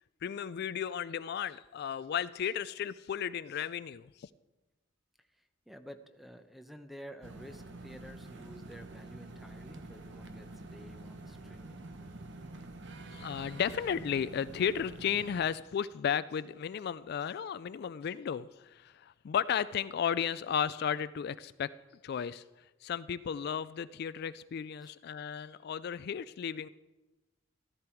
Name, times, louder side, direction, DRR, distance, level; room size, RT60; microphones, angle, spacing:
voice 1, 0.2-4.3 13.1-21.7 22.0-22.4 22.8-26.7, left 8 dB, 55° left, 16 dB, 0.3 m, -34 dB
voice 2, 5.7-11.9 24.8-24.9, equal, ahead, 8 dB, 0.8 m, -51 dB
sound 1, 7.2-15.4, right 2 dB, 65° right, 1.1 m, -47 dB
14.0 x 13.5 x 4.5 m, 1.1 s
head